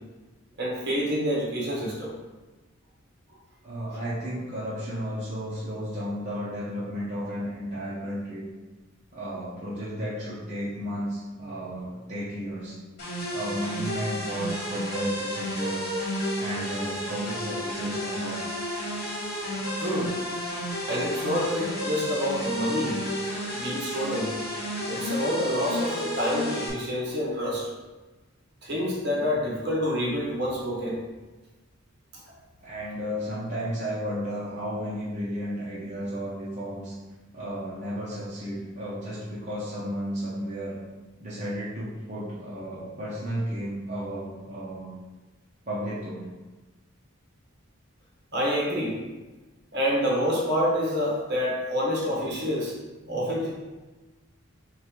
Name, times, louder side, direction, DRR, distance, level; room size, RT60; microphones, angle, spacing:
voice 1, 0.6-2.1 19.8-20.1 20.9-23.0 23.5-24.3 24.9-27.7 28.6-31.0 48.3-49.0 49.7-52.8 53.1-53.5, equal, 55° right, -4 dB, 1.2 m, -27 dB
voice 2, 3.6-8.4 9.1-12.8 13.3-16.0 16.3-18.4 32.6-36.9 37.3-40.8 41.2-44.9 45.7-46.3, equal, 35° right, -10 dB, 0.8 m, -33 dB
sound 1, 13.0-26.7, equal, 50° left, 1.2 m, -31 dB
3.3 x 3.3 x 4.5 m, 1.2 s
head